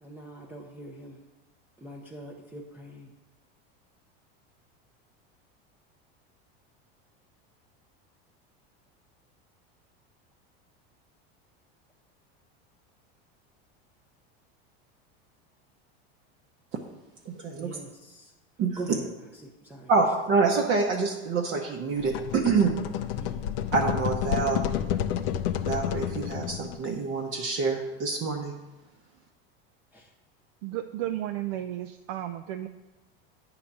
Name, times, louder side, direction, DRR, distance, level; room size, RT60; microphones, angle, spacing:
voice 1, 0.0-1.2 1.8-3.1 17.6-18.3 18.8-19.1 19.4-19.9 23.2-23.4 29.9-30.1, right 2 dB, 5° right, -1 dB, 0.6 m, -42 dB
voice 2, 17.3-17.8 18.6-18.8 19.9-22.8 23.7-24.6 25.6-28.5, right 4 dB, 40° right, 1 dB, 0.8 m, -26 dB
sound 1, 22.0-26.9, left 10 dB, 65° left, 0.6 m, -30 dB
voice 3, 30.6-32.7, right 13 dB, 75° right, 7 dB, 0.5 m, -33 dB
8.5 x 3.9 x 5.9 m, 1.1 s
supercardioid pair, 135°, 30 cm